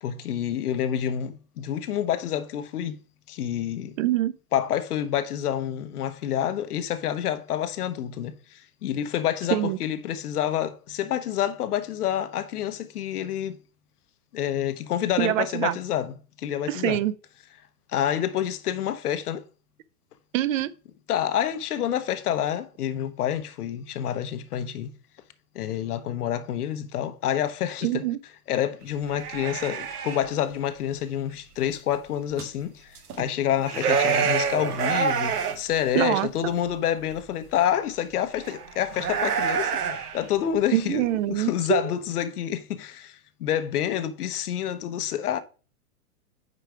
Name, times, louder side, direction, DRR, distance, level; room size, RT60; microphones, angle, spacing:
voice 1, 0.0-3.0 3.3-3.9 4.5-13.6 14.3-17.0 17.9-19.5 21.1-24.9 25.5-28.0 28.5-39.8 40.1-45.4, left 10 dB, 85° left, 0.9 m, -28 dB
voice 2, 4.0-4.3 9.5-9.8 15.2-15.8 16.7-17.1 20.3-20.7 27.8-28.2 35.9-36.3 40.7-41.8, right 13 dB, 60° right, 0.6 m, -24 dB
sound 1, 29.1-30.3 32.4-32.5 33.0-33.2 33.5-35.6 35.9-36.0 37.2-37.3 38.4-40.3, right 6 dB, 85° right, 1.7 m, -26 dB
4.9 x 4.7 x 4.8 m
hypercardioid pair, 150°, 45 cm